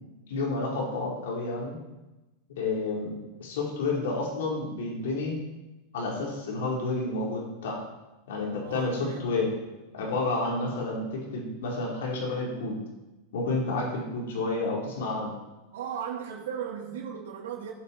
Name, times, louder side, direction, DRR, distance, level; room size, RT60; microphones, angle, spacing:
voice 1, 0.3-1.8 2.6-5.4 5.9-7.8 8.3-9.5 9.9-12.8 13.3-15.3, left 3 dB, 80° left, -3 dB, 4.6 m, -30 dB
voice 2, 8.6-9.3 13.9-14.1 15.7-17.7, right 8 dB, 85° right, -5 dB, 2.8 m, -37 dB
18.5 x 7.6 x 4.7 m, 1.0 s
supercardioid pair, 130°, 0 cm